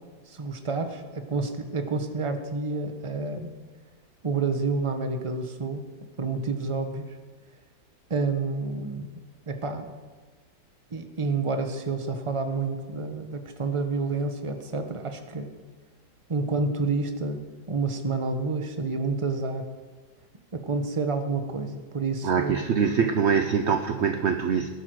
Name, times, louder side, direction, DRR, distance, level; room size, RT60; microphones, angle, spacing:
voice 1, 0.3-3.5 4.2-5.9 6.2-7.1 8.1-9.1 9.5-9.9 10.9-15.5 16.3-19.7 20.5-22.6, right 3 dB, 25° right, 6 dB, 0.8 m, -29 dB
voice 2, 22.2-24.7, right 6 dB, 60° right, 7 dB, 0.7 m, -24 dB
18.0 x 11.0 x 4.8 m, 1.4 s
omnidirectional pair, 2.0 m